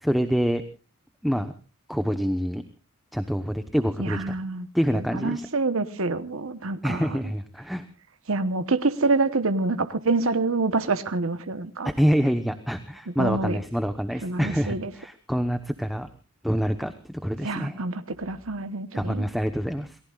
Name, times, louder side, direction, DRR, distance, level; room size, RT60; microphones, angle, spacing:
voice 1, 0.0-0.6 1.2-1.5 1.9-2.6 3.1-4.3 4.7-5.5 6.8-7.8 11.8-16.1 16.4-17.8 18.9-20.0, equal, ahead, 1.0 m, -26 dB
voice 2, 4.0-4.7 4.9-7.2 8.3-11.9 13.2-13.6 14.2-14.9 17.4-19.2, right 3 dB, 65° right, 1.1 m, -26 dB
28.5 x 19.0 x 2.4 m
head